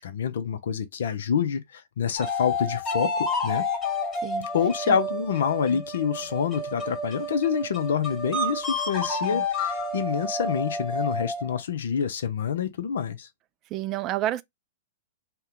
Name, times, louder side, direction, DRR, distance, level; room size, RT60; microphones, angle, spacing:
voice 1, 0.0-3.7 4.5-13.3, left 7 dB, 65° left, 0.6 m, -27 dB
sound 1, 2.2-11.6, left 2 dB, 20° left, 1.1 m, -30 dB
voice 2, 13.7-14.4, right 14 dB, 35° right, 0.3 m, -30 dB
2.8 x 2.2 x 3.6 m
figure-of-eight pair, 105°, 0 cm